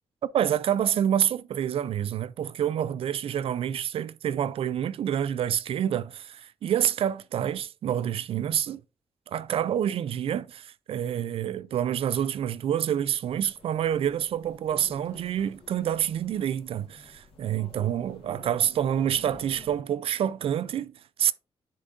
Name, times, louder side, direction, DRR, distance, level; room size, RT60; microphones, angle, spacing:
voice 1, 0.3-8.8 9.3-21.3, right 10 dB, 60° right, 0.4 m, -27 dB
sound 1, 13.3-19.8, left 3 dB, 55° left, 1.4 m, -51 dB
10.0 x 3.8 x 2.5 m
wide cardioid pair, 165°, 11 cm